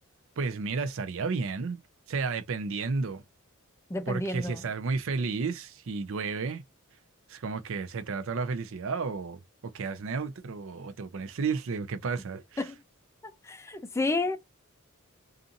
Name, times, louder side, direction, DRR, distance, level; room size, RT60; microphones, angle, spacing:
voice 1, 0.4-1.8 2.1-3.2 4.1-6.6 7.3-12.7, right 4 dB, 65° right, 0.5 m, -32 dB
voice 2, 3.9-4.6 12.6-12.7 13.4-14.4, left 2 dB, 15° left, 0.4 m, -30 dB
2.6 x 2.5 x 2.5 m
head